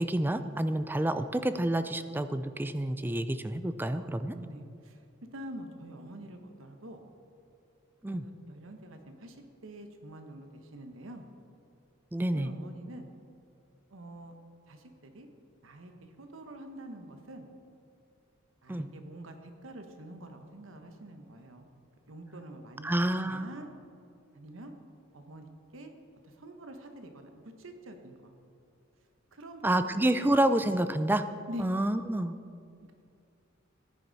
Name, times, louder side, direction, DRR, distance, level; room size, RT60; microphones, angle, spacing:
voice 1, 0.0-4.4 8.0-8.3 12.1-12.5 18.7-18.9 22.8-23.5 29.6-31.3 31.6-32.4, right 1 dB, 10° right, 11 dB, 0.4 m, -28 dB
voice 2, 4.3-5.0 5.3-7.0 8.1-11.2 12.3-13.1 13.9-14.3 14.7-15.3 15.6-17.5 18.6-21.7 22.1-22.9 23.2-23.7 24.3-24.7 25.1-25.9 26.2-28.3 29.3-29.7 31.5-31.7, right 1 dB, 80° right, 5 dB, 1.1 m, -46 dB
14.5 x 9.9 x 4.0 m, 2.5 s
head